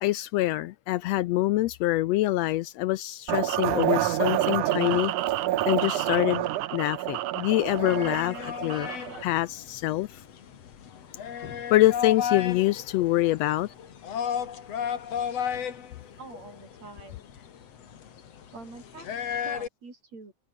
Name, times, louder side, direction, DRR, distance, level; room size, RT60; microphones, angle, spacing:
voice 1, 0.0-5.1 5.6-6.4 6.7-8.9 9.2-10.1 11.7-13.7, left 16 dB, 80° left, 1.5 m, -25 dB
sound 1, 3.3-9.2, right 14 dB, 90° right, 2.6 m, -28 dB
sound 2, 7.6-19.7, left 8 dB, 55° left, 3.0 m, -34 dB
voice 2, 16.2-17.2 18.5-20.3, right 3 dB, 60° right, 7.4 m, -46 dB
omnidirectional pair, 3.4 m